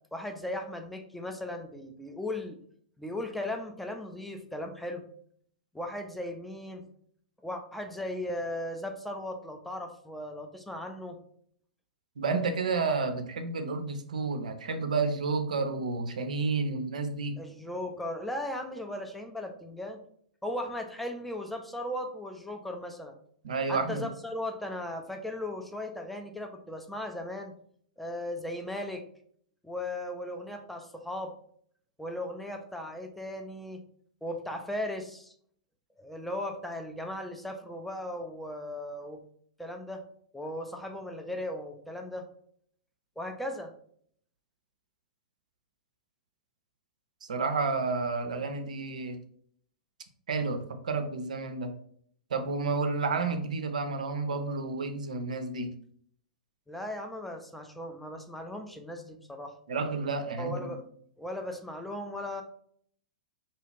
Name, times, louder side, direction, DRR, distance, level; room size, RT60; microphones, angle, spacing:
voice 1, 0.1-2.6 3.0-5.1 5.7-6.8 7.4-11.2 17.4-20.0 20.4-23.2 23.7-27.5 28.0-29.1 29.6-31.3 32.0-33.8 34.2-35.3 36.0-39.2 39.6-40.0 40.3-42.3 43.2-43.7 56.7-59.5 60.4-60.8 61.2-62.4, left 1 dB, 5° left, 4 dB, 0.4 m, -37 dB
voice 2, 12.2-17.4 23.4-24.1 47.2-49.2 50.3-51.7 52.3-55.7 59.7-60.7, right 4 dB, 75° right, 7 dB, 0.4 m, -31 dB
2.6 x 2.3 x 3.1 m, 0.62 s
figure-of-eight pair, 100°, 4 cm